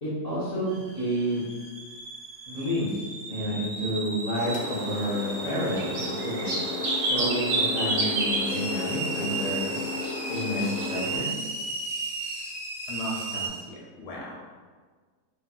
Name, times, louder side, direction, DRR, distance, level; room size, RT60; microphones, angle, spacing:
voice 1, 0.0-1.4 2.5-6.6 7.1-9.7 10.3-11.3, equal, 45° left, -10 dB, 0.5 m, -30 dB
sound 1, 0.7-13.5, right 3 dB, 80° right, 1.4 m, -35 dB
sound 2, 4.3-11.2, equal, 65° right, 0.9 m, -30 dB
voice 2, 12.9-14.4, equal, 85° left, -3 dB, 1.3 m, -37 dB
3.2 x 2.6 x 2.3 m, 1.5 s
omnidirectional pair, 1.7 m